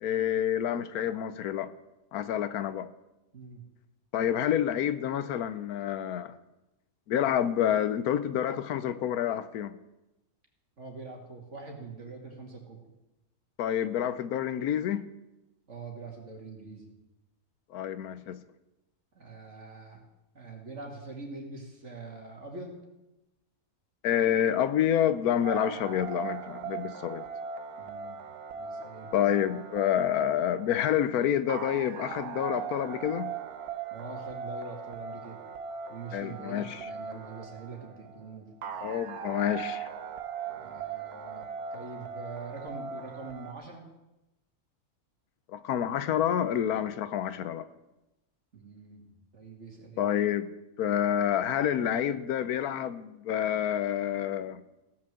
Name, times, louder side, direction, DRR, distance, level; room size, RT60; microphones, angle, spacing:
voice 1, 0.0-1.7 2.1-2.9 4.1-6.3 7.1-9.8 13.6-15.1 17.7-18.4 24.0-27.2 29.1-33.3 36.1-36.9 38.8-39.9 45.5-47.7 50.0-54.6, left 10 dB, 90° left, 1.2 m, -28 dB
voice 2, 10.8-12.9 15.7-16.9 19.1-20.0 20.3-22.8 27.8-28.2 28.5-29.1 33.9-35.5 35.9-38.5 40.5-43.8 48.5-50.1, right 3 dB, 55° right, 2.7 m, -44 dB
sound 1, 25.4-43.5, right 6 dB, 85° right, 1.3 m, -39 dB
16.0 x 6.2 x 7.6 m
omnidirectional pair, 1.5 m